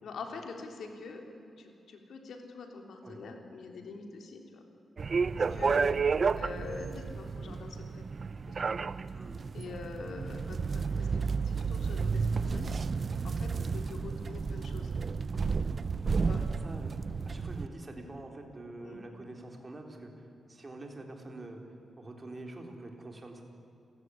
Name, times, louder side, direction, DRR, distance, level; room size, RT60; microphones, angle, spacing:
voice 1, 0.0-1.2 1.6-4.6 5.3-5.9 6.4-8.0 8.5-8.9 9.5-12.7 13.2-14.9 16.2-16.4 18.8-19.0, left 4 dB, 75° left, 4 dB, 3.5 m, -45 dB
sound 1, 5.0-17.7, right 5 dB, 40° right, 0.6 m, -32 dB
voice 2, 5.4-5.8 9.1-9.4 9.7-9.8 13.5-13.7 16.1-16.9 17.3-21.6 22.0-23.4, right 2 dB, 25° right, 3 dB, 3.6 m, -46 dB
29.5 x 15.5 x 9.8 m, 2.6 s
wide cardioid pair, 150°, 0 cm